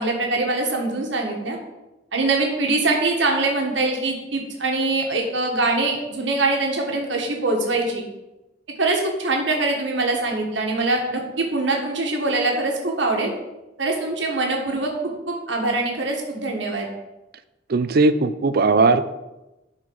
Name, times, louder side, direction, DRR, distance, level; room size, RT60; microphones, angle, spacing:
voice 1, 0.0-1.6 2.1-8.0 8.8-13.3 13.8-16.9, right 2 dB, 75° right, 1 dB, 1.5 m, -23 dB
voice 2, 17.7-19.0, right 3 dB, 55° right, 12 dB, 0.4 m, -18 dB
11.0 x 4.4 x 4.7 m, 1.0 s
head